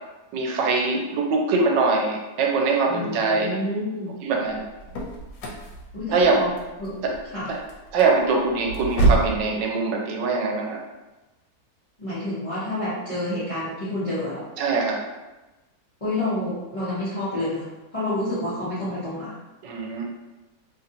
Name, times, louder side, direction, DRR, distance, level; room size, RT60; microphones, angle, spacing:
voice 1, 0.3-3.5 4.2-4.6 6.1-6.4 7.0-7.1 7.5-7.6 7.9-10.8 14.6-15.0 19.6-20.0, right 4 dB, 85° right, 1 dB, 1.2 m, -23 dB
voice 2, 2.9-4.1 5.9-6.5 6.8-7.0 7.3-7.5 12.0-14.4 16.0-17.6 17.9-19.4, left 1 dB, 30° left, -12 dB, 0.7 m, -28 dB
sound 1, 4.5-9.4, right 2 dB, 90° left, 1.3 m, -27 dB
3.1 x 2.5 x 2.6 m, 1.1 s
omnidirectional pair, 1.9 m